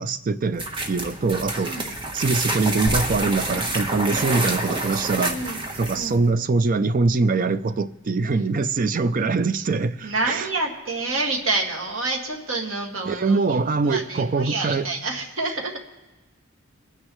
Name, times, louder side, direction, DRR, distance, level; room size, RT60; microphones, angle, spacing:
voice 1, 0.0-1.8 2.1-5.4 5.8-10.5 13.1-14.8, right 3 dB, 40° right, 0.4 m, -23 dB
sound 1, 0.5-6.1, right 2 dB, 25° right, 1.1 m, -28 dB
voice 2, 1.5-1.9 5.2-5.6 5.9-6.2 10.0-15.8, right 2 dB, 75° right, 2.0 m, -28 dB
sound 2, 2.9-7.0 7.4-7.5 8.9-9.0, equal, 20° left, 5.2 m, -38 dB
22.0 x 9.7 x 3.1 m
head